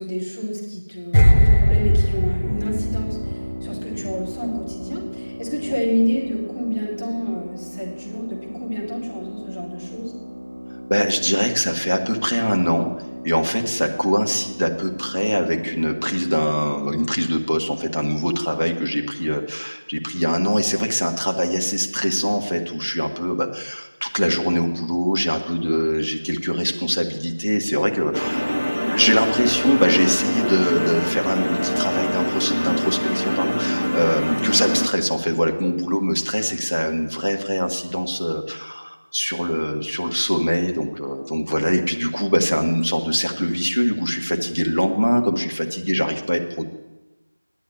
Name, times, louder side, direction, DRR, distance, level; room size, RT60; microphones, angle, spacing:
voice 1, 0.0-10.1, equal, 20° left, -1 dB, 1.0 m, -27 dB
sound 1, 1.1-4.3 4.6-4.9, equal, 35° left, 0.3 m, -18 dB
sound 2, 2.4-16.9, equal, 10° right, 1.2 m, -36 dB
voice 2, 10.9-12.9 13.2-28.6 28.9-46.7, equal, 85° left, 3 dB, 1.7 m, -22 dB
sound 3, 28.1-34.9, equal, 60° left, 0.9 m, -23 dB
9.2 x 8.2 x 9.6 m, 1.1 s
figure-of-eight pair, 180°, 0 cm